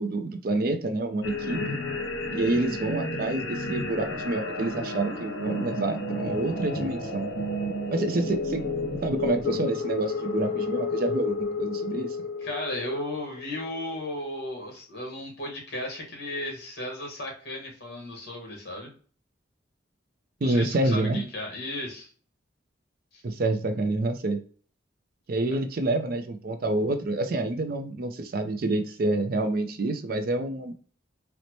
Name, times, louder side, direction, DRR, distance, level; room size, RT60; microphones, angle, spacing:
voice 1, 0.0-1.8 2.3-7.3 7.9-8.6 9.0-12.2 20.4-21.2 23.2-24.4 25.3-30.7, right 2 dB, 45° right, 7 dB, 0.4 m, -28 dB
sound 1, 1.2-13.9, left 2 dB, 75° left, 0.9 m, -31 dB
voice 2, 12.4-18.9 20.4-22.1 23.1-23.2 25.5-25.6, left 1 dB, 55° left, 1 dB, 1.2 m, -35 dB
4.0 x 2.1 x 3.0 m, 0.42 s
head